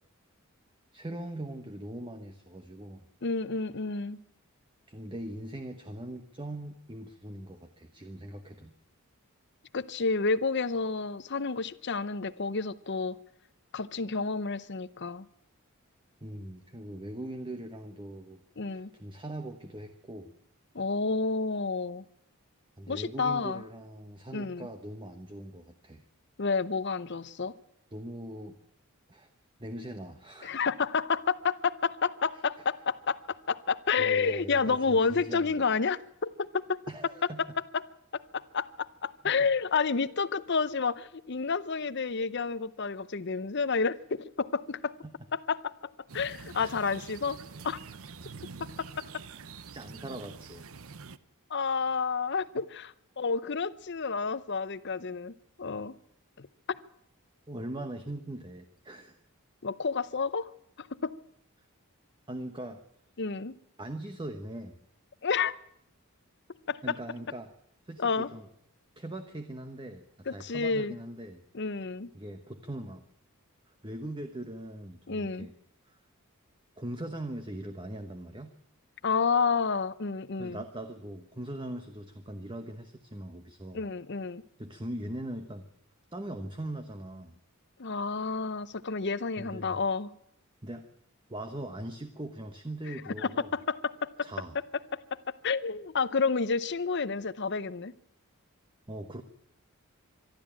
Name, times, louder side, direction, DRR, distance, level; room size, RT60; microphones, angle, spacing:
voice 1, 0.9-3.0 4.9-8.7 16.2-18.4 18.7-20.3 22.8-26.0 27.9-28.6 29.1-29.3 29.6-30.6 32.6-32.7 34.0-35.7 36.9-37.4 39.2-39.5 45.0-45.1 46.6-46.7 49.7-50.6 57.5-59.2 61.6-61.7 62.3-62.8 63.8-64.8 66.8-67.5 67.8-68.5 69.0-71.4 72.1-73.0 73.8-75.5 75.9-76.0 76.8-78.5 80.4-83.8 84.6-85.6 86.1-87.4 89.4-89.8 90.6-90.9 91.3-93.5 94.2-94.6 98.9-99.2, right 1 dB, 20° right, 7 dB, 1.0 m, -41 dB
voice 2, 3.2-4.2 9.7-13.2 13.7-15.3 18.6-18.9 20.7-22.0 22.9-23.6 24.3-24.7 26.4-27.6 30.4-36.8 37.7-37.8 38.1-44.9 45.3-45.7 46.1-47.4 47.6-47.8 48.8-49.2 51.5-55.3 55.6-55.9 56.4-56.5 59.6-60.5 60.8-61.1 63.2-63.5 65.2-65.6 66.7-67.0 68.0-68.3 70.3-71.0 71.5-72.1 75.1-75.5 79.0-80.6 83.7-84.4 87.8-90.1 93.2-94.3 94.9-95.2 95.4-97.9, left 4 dB, 50° left, 16 dB, 0.7 m, -30 dB
sound 1, 46.1-51.2, right 4 dB, 75° right, 0.9 m, -46 dB
23.5 x 12.5 x 8.9 m, 0.76 s
head